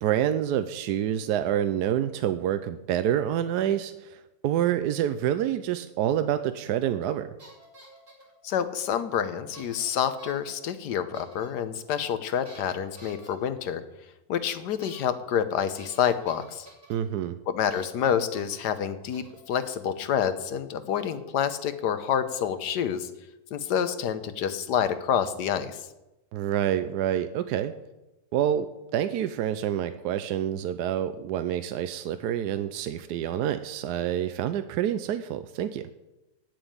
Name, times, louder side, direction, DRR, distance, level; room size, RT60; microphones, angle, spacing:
voice 1, 0.0-7.3 16.9-17.4 26.3-27.7 28.3-35.9, right 10 dB, 80° right, 11 dB, 1.2 m, -27 dB
sound 1, 7.0-7.1 7.4-8.3 9.5-9.9 10.2-10.5 11.1-11.5 12.4-13.3 14.8-15.0 15.3-15.4 15.8-16.9 17.7-18.0 18.3-18.7 19.1-19.8, right 2 dB, 50° right, 3.9 m, -49 dB
voice 2, 8.4-13.8 14.3-16.7 17.5-23.1 23.5-25.8, left 8 dB, 85° left, 11 dB, 1.5 m, -28 dB
9.1 x 7.8 x 8.7 m, 0.99 s
omnidirectional pair, 1.7 m